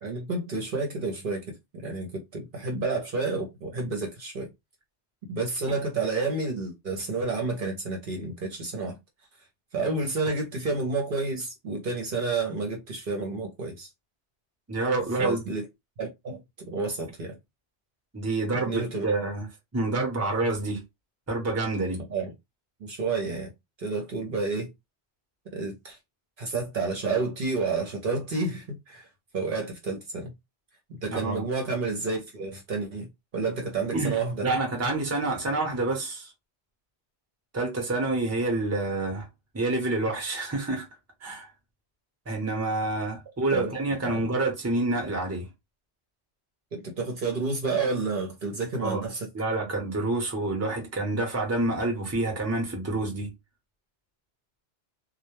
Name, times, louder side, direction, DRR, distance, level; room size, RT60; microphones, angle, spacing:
voice 1, 0.0-4.5 5.3-9.0 9.7-13.9 15.2-15.6 16.0-17.4 18.7-19.1 22.1-22.3 22.8-23.5 23.8-24.7 25.5-26.0 26.4-29.1 29.3-30.3 30.9-33.1 33.3-34.5 43.5-43.7 44.0-44.2 46.7-49.3, right 3 dB, 60° right, 0.8 m, -30 dB
voice 2, 14.7-15.4 18.1-19.5 19.7-20.8 21.3-22.1 31.1-31.4 33.9-34.2 34.4-36.3 37.5-39.3 39.5-40.8 41.2-41.5 42.3-45.5 48.8-49.0 49.3-53.3, right 2 dB, 15° right, 0.7 m, -28 dB
2.1 x 2.1 x 2.9 m
omnidirectional pair, 1.1 m